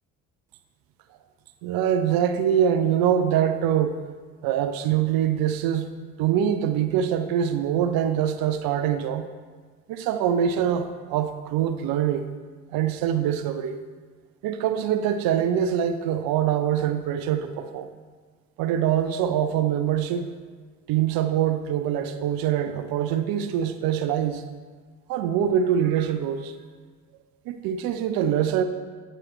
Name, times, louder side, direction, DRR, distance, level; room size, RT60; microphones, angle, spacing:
voice 1, 1.6-4.0 4.4-5.9 6.2-9.3 9.9-12.3 12.7-13.8 14.4-17.9 18.6-20.3 20.9-24.4 25.1-26.5 27.5-28.6, right 9 dB, 60° right, 9 dB, 0.6 m, -24 dB
8.8 x 7.6 x 3.1 m, 1.5 s
hypercardioid pair, 50°, 40 cm